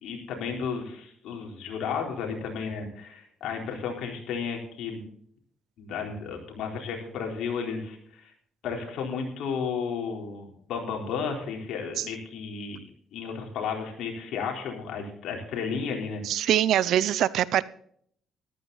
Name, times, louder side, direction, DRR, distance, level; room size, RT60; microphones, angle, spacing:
voice 1, 0.0-5.0 5.8-8.3 8.6-12.8 13.1-16.5, left 6 dB, 75° left, 3.9 m, -33 dB
voice 2, 16.2-17.6, right 11 dB, 70° right, 0.6 m, -23 dB
14.0 x 12.5 x 4.1 m
cardioid pair, 95°, 0 cm